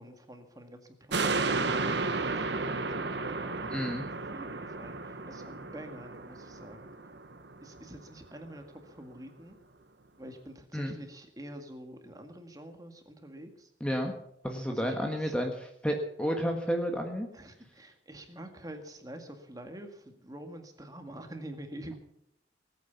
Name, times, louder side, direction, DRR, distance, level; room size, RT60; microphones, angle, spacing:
voice 1, 0.0-6.9 7.6-9.6 10.2-13.7 14.7-15.3 17.3-22.0, right 1 dB, 20° right, 5 dB, 1.9 m, -47 dB
sound 1, 1.1-7.8 8.2-8.3, right 3 dB, 70° right, 1.4 m, -33 dB
voice 2, 3.7-4.0 10.7-11.0 13.8-14.1 14.4-17.3, equal, 5° left, 3 dB, 1.4 m, -31 dB
19.0 x 9.1 x 7.1 m, 0.75 s
head